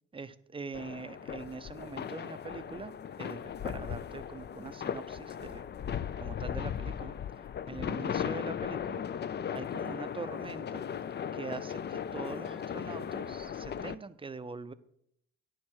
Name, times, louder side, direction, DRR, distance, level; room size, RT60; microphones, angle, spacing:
voice 1, 0.1-5.7 6.2-7.1 7.7-9.0 9.5-10.8 11.3-14.7, right 4 dB, 20° right, 13 dB, 0.6 m, -43 dB
sound 1, 0.7-14.0, left 8 dB, 35° left, 0.4 m, -37 dB
9.9 x 7.4 x 6.3 m, 0.74 s
cardioid pair, 90°, 30 cm